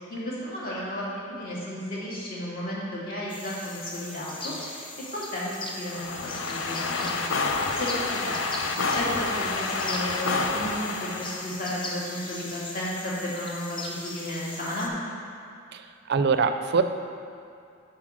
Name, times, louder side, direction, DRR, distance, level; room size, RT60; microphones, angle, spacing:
voice 1, 0.0-4.8 5.1-7.1 7.6-8.4 8.9-14.9, left 1 dB, 45° left, -6 dB, 1.9 m, -33 dB
sound 1, 3.3-14.9, left 2 dB, 25° left, 0.7 m, -39 dB
sound 2, 5.9-11.6, left 3 dB, 80° left, 0.6 m, -29 dB
voice 2, 15.7-16.8, right 5 dB, 55° right, 9 dB, 0.4 m, -24 dB
7.3 x 4.5 x 6.3 m, 2.5 s
head